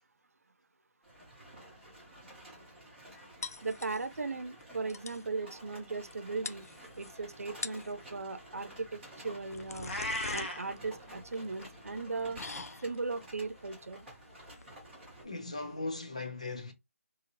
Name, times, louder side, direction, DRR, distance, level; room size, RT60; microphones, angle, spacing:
sound 1, 1.0-15.2, right 1 dB, 5° right, 0.9 m, -52 dB
sound 2, 3.4-4.3 4.6-4.7 4.9-5.3 6.1-6.2 6.4-7.1 7.5-8.0 9.1-15.8, left 4 dB, 80° left, 0.4 m, -45 dB
voice 1, 3.6-6.6 7.0-10.0 10.3-12.4 12.8-14.1, right 3 dB, 75° right, 0.5 m, -37 dB
Meow, 9.8-10.7, left 1 dB, 40° left, 1.0 m, -35 dB
voice 2, 15.2-16.7, left 3 dB, 25° left, 0.5 m, -38 dB
2.9 x 2.7 x 2.5 m
figure-of-eight pair, 180°, 8 cm